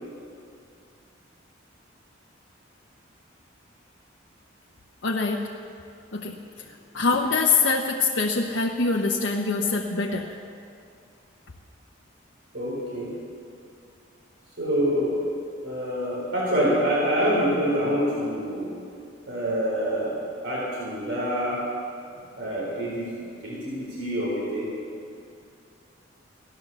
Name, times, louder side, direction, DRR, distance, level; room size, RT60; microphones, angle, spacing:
voice 1, 5.0-5.5 6.1-6.6 6.9-10.3, left 4 dB, 70° left, -1 dB, 0.9 m, -24 dB
voice 2, 12.5-13.1 14.6-15.2 15.6-18.7 19.3-20.2 20.4-21.6 22.4-24.7, equal, 70° right, -6 dB, 4.3 m, -26 dB
14.5 x 11.0 x 6.9 m, 2.5 s
head